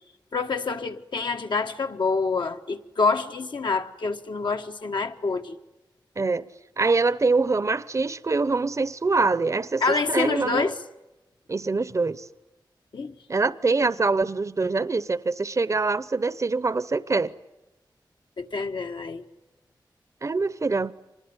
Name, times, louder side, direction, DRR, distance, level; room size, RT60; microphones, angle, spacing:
voice 1, 0.3-5.5 9.8-10.7 12.9-13.1 18.4-19.2, left 4 dB, 70° left, 1.5 m, -27 dB
voice 2, 6.8-10.7 11.5-12.2 13.3-17.3 20.2-20.9, right 3 dB, 40° right, 0.8 m, -24 dB
25.5 x 20.0 x 9.5 m
wide cardioid pair, 90°, 8 cm